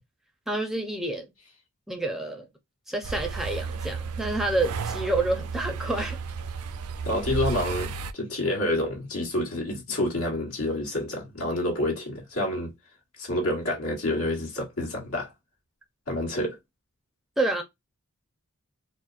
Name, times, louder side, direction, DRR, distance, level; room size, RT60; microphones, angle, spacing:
voice 1, 0.5-1.3 1.9-2.5 2.9-6.2 17.4-17.6, right 2 dB, ahead, 0.5 m, -28 dB
sound 1, 3.0-8.1, right 5 dB, 80° right, 0.4 m, -33 dB
voice 2, 7.0-12.7 13.2-15.3 16.1-16.6, left 1 dB, 75° left, 1.3 m, -28 dB
4.1 x 2.1 x 2.4 m
head